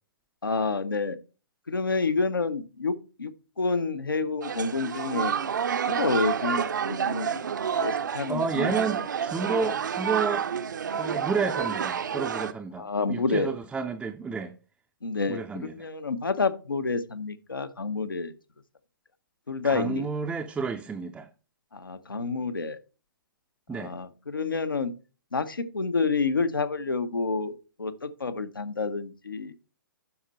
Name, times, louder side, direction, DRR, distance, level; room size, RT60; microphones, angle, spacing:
voice 1, 0.4-1.2 1.7-3.3 3.6-5.3 5.9-7.4 7.7-8.7 12.8-13.5 15.0-18.3 19.5-20.0 21.7-22.8 23.7-24.9 25.3-29.5, left 4 dB, 75° left, 0.9 m, -29 dB
sound 1, 4.4-12.5, right 7 dB, 60° right, 0.7 m, -29 dB
voice 2, 8.3-10.5 11.0-14.5 15.3-15.9 19.6-21.3 23.7-23.9, right 5 dB, 5° right, 0.5 m, -31 dB
11.5 x 4.4 x 4.1 m
figure-of-eight pair, 120°, 11 cm